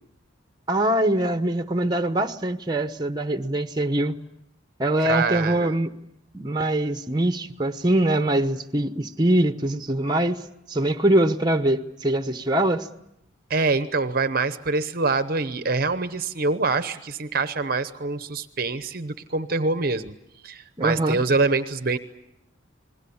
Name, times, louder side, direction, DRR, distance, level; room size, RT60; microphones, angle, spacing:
voice 1, 0.7-4.1 4.8-5.9 6.3-10.4 10.7-12.9 20.8-21.2, right 1 dB, 20° right, 8 dB, 1.0 m, -23 dB
voice 2, 5.0-5.7 13.5-20.1 20.4-22.0, right 3 dB, 45° right, 11 dB, 0.9 m, -25 dB
29.0 x 21.0 x 7.1 m, 0.81 s
head